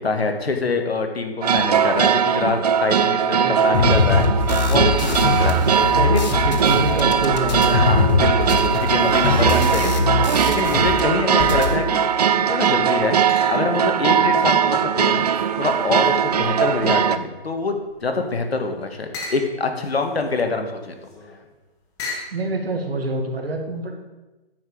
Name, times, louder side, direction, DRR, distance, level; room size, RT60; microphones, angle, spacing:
voice 1, 0.0-4.3 4.7-5.6 6.1-6.6 7.7-10.3 10.5-12.0 12.4-15.2 15.6-20.9, left 3 dB, 80° left, 5 dB, 1.7 m, -25 dB
sound 1, 1.4-17.2, right 8 dB, 40° right, 0.4 m, -20 dB
voice 2, 3.4-3.9 5.7-8.2 22.3-24.0, right 2 dB, 70° right, 4 dB, 2.0 m, -26 dB
sound 2, 3.7-11.0 11.3-11.7, left 4 dB, 45° left, 1.3 m, -21 dB
sound 3, 11.8-12.3 13.3-13.9 14.4-17.1 17.5-22.4, left 3 dB, 10° left, 1.0 m, -39 dB
9.4 x 8.0 x 4.9 m, 1.1 s
hypercardioid pair, 150°, 30 cm